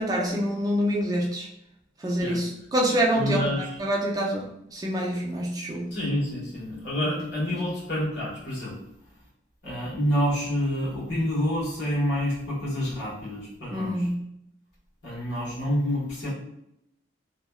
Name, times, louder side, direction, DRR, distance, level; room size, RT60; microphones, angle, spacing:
voice 1, 0.0-1.5 2.0-6.0 7.0-7.2 7.5-7.6 13.7-14.3, equal, 20° right, -2 dB, 0.3 m, -26 dB
voice 2, 3.1-3.7 5.9-8.8 9.6-14.1 15.0-16.3, equal, 70° left, -6 dB, 1.2 m, -28 dB
2.7 x 2.1 x 2.2 m, 0.78 s
head